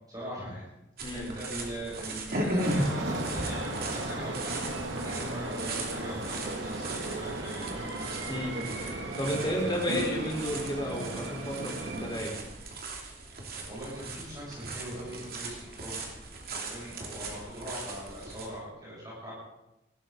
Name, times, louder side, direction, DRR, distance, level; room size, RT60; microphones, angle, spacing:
voice 1, 0.1-0.7 1.1-7.9 9.3-10.1 13.6-16.0 16.5-19.3, equal, 20° right, -6 dB, 7.0 m, -41 dB
sound 1, 1.0-18.5, right 2 dB, 55° right, 2.8 m, -38 dB
sound 2, 2.6-12.2, right 1 dB, 80° right, 2.5 m, -36 dB
voice 2, 9.2-12.4, equal, 25° left, -1 dB, 4.1 m, -32 dB
19.5 x 15.0 x 4.0 m, 0.93 s
head